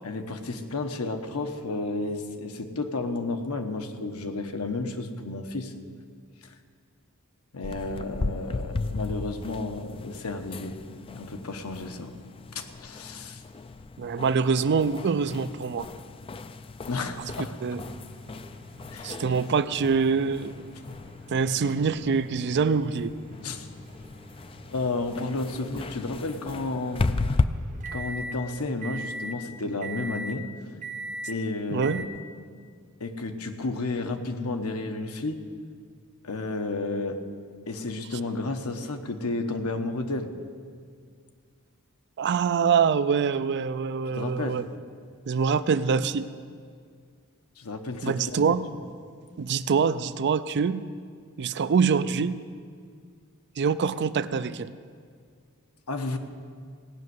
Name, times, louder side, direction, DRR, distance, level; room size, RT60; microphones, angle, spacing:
voice 1, 0.0-5.7 6.4-6.5 7.5-10.8 11.1-12.1 12.5-13.4 16.9-17.6 18.9-19.2 23.4-23.7 24.7-27.4 27.9-30.5 31.3-32.0 33.0-35.4 36.2-37.2 37.7-40.3 44.1-44.7 47.6-48.4 55.9-56.2, left 3 dB, 75° left, 6 dB, 1.1 m, -32 dB
sound 1, 7.6-27.4, left 3 dB, 25° left, 0.4 m, -35 dB
voice 2, 14.0-15.9 17.6-17.8 19.0-20.5 21.3-23.1 31.7-32.1 42.2-44.6 45.3-46.3 48.0-48.7 49.4-50.9 51.4-52.4 53.6-54.7, right 5 dB, 50° right, 13 dB, 0.4 m, -25 dB
sound 2, 17.7-28.4 28.8-29.4 29.8-30.4 30.8-31.4 31.8-32.0, right 2 dB, 35° right, 0.8 m, -42 dB
17.0 x 6.2 x 9.5 m, 2.1 s
head